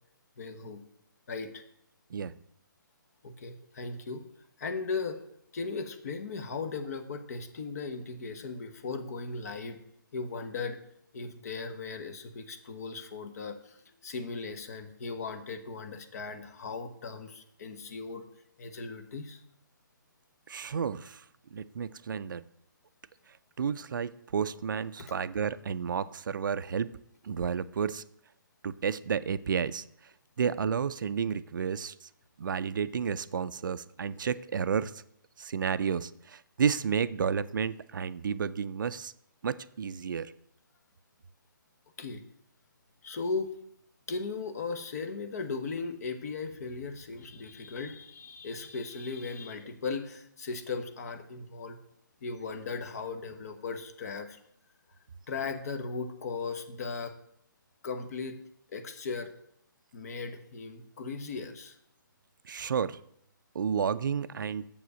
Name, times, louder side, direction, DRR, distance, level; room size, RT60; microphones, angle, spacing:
voice 1, 0.4-0.8 1.3-1.6 3.2-4.2 4.6-5.2 5.5-9.8 10.1-10.8 11.1-18.2 18.6-19.4 42.0-42.2 43.0-43.5 44.1-51.8 52.2-54.4 55.3-57.1 57.8-58.4 58.7-59.3 59.9-61.8, left 4 dB, 50° left, 8 dB, 1.0 m, -37 dB
voice 2, 20.5-21.2 21.5-22.4 23.6-27.0 27.2-28.0 28.6-29.8 30.4-31.9 32.4-35.0 35.4-39.1 39.4-40.3 62.5-63.0 63.5-64.7, right 7 dB, 65° right, 16 dB, 0.4 m, -31 dB
7.1 x 5.0 x 6.7 m, 0.72 s
hypercardioid pair, 150°, 11 cm